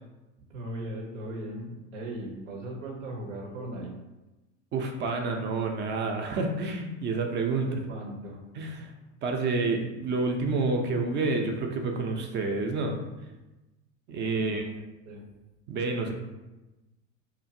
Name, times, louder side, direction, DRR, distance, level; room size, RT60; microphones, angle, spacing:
voice 1, 0.4-3.9 7.5-8.4 14.3-14.7 15.1-15.2, right 1 dB, 90° right, 0 dB, 0.7 m, -38 dB
voice 2, 4.7-7.8 8.6-8.9 9.2-13.0 14.1-14.6 15.7-16.1, right 3 dB, 30° right, 3 dB, 0.4 m, -29 dB
2.8 x 2.4 x 2.6 m, 1.1 s
hypercardioid pair, 85°, 37 cm